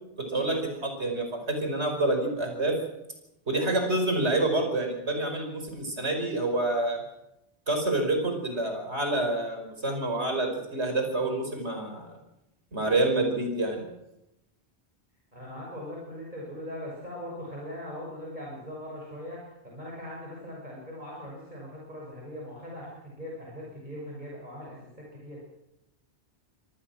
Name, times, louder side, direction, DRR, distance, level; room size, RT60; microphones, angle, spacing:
voice 1, 0.8-2.7 3.5-7.0 7.7-12.1 12.7-13.8, right 2 dB, 80° right, 4 dB, 5.5 m, -27 dB
voice 2, 15.3-25.4, left 1 dB, 45° right, -3 dB, 6.5 m, -40 dB
26.0 x 19.5 x 6.2 m, 0.88 s
omnidirectional pair, 1.1 m